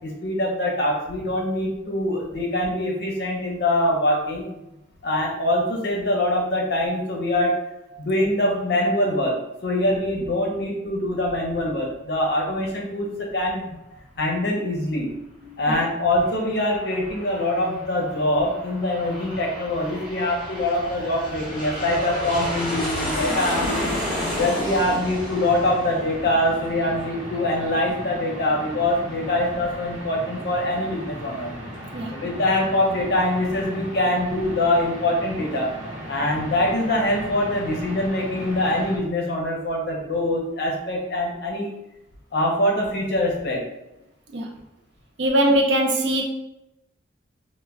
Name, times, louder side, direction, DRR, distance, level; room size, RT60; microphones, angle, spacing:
voice 1, 0.0-4.6 5.0-7.5 8.0-9.4 9.6-13.8 14.2-15.1 15.6-23.9 24.3-31.5 32.1-35.7 36.1-41.7 42.3-43.6, left 1 dB, 55° left, -1 dB, 0.6 m, -24 dB
Aircraft, 16.0-27.2, left 1 dB, ahead, 0.9 m, -32 dB
sound 1, 22.3-39.0, equal, 80° right, 1.0 m, -37 dB
voice 2, 45.2-46.2, right 1 dB, 60° right, 1 dB, 0.5 m, -21 dB
2.1 x 2.1 x 3.4 m, 0.89 s
head